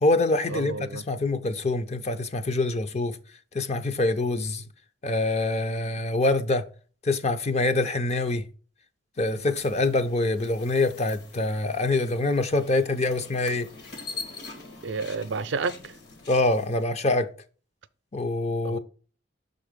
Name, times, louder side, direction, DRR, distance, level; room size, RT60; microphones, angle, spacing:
voice 1, 0.0-3.2 3.5-4.6 5.0-6.7 7.0-8.4 9.2-13.7 16.3-17.3 18.1-18.8, left 2 dB, 35° left, 0.6 m, -25 dB
voice 2, 0.5-1.0 14.8-15.7 18.6-18.8, right 4 dB, 75° right, 0.5 m, -30 dB
sound 1, 9.2-16.9, left 4 dB, 60° left, 1.7 m, -44 dB
6.1 x 3.9 x 5.0 m
head